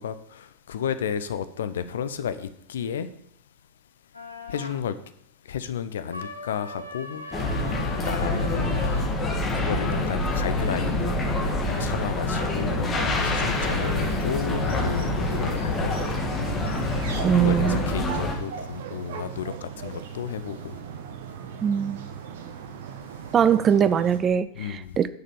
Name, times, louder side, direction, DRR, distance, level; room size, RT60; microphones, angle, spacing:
voice 1, 0.0-3.1 4.5-4.9 5.4-7.2 7.6-16.3 17.3-20.8 24.5-25.0, left 8 dB, 60° left, 0.8 m, -33 dB
sound 1, 4.1-4.8 6.1-9.1, left 2 dB, 80° left, 1.3 m, -40 dB
sound 2, 7.3-18.3, left 2 dB, 20° left, 2.5 m, -26 dB
sound 3, 13.1-24.2, right 7 dB, 55° right, 1.2 m, -38 dB
voice 2, 17.2-17.9 21.6-22.1 23.3-25.1, right 8 dB, 25° right, 0.6 m, -22 dB
9.5 x 6.7 x 6.9 m
figure-of-eight pair, 90°, 0 cm